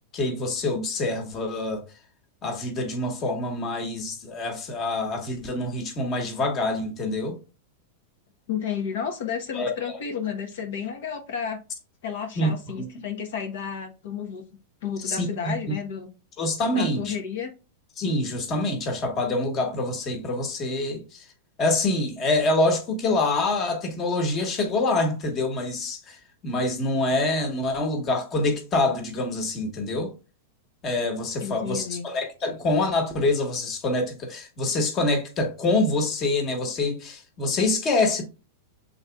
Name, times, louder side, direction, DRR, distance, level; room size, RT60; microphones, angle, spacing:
voice 1, 0.1-1.8 2.4-7.4 9.5-10.0 12.4-12.9 15.0-15.5 16.4-17.1 18.0-21.2 21.6-26.2 26.4-30.1 30.8-38.2, left 2 dB, 30° left, 1.4 m, -26 dB
voice 2, 8.5-11.6 12.0-14.4 14.8-16.1 16.7-17.5 31.4-32.1, left 7 dB, 70° left, 1.0 m, -32 dB
5.9 x 4.0 x 2.3 m
supercardioid pair, 135°, 0 cm